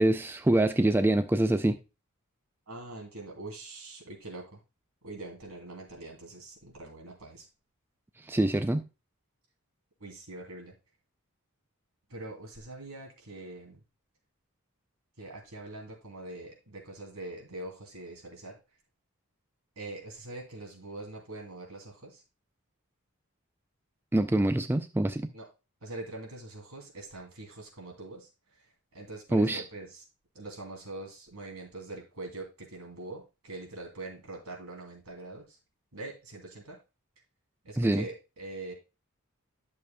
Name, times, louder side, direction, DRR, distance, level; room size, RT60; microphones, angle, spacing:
voice 1, 0.0-1.8 8.3-8.9 24.1-25.3 29.3-29.6 37.8-38.0, right 1 dB, 10° right, 0.3 m, -25 dB
voice 2, 2.7-4.6 5.0-7.5 10.0-10.8 12.1-13.8 15.2-18.6 19.8-22.2 25.3-25.5 25.8-30.0 30.3-35.6 35.9-36.8 37.6-38.7, right 2 dB, 85° right, 2.7 m, -43 dB
11.0 x 6.8 x 2.2 m
head